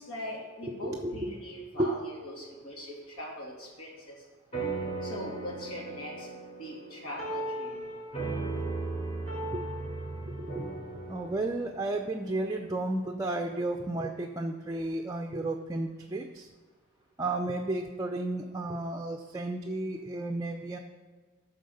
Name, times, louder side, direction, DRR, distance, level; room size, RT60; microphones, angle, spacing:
voice 1, 0.0-4.2 5.0-6.3 6.6-7.9, left 1 dB, 90° left, -2 dB, 2.7 m, -41 dB
voice 2, 0.6-1.1 1.8-1.9 9.5-9.7 10.1-10.7 11.1-16.5 17.2-20.8, right 2 dB, 15° right, 3 dB, 0.5 m, -33 dB
sound 1, 4.5-13.2, right 2 dB, 30° left, 3.2 m, -37 dB
13.0 x 4.7 x 6.5 m, 1.4 s
head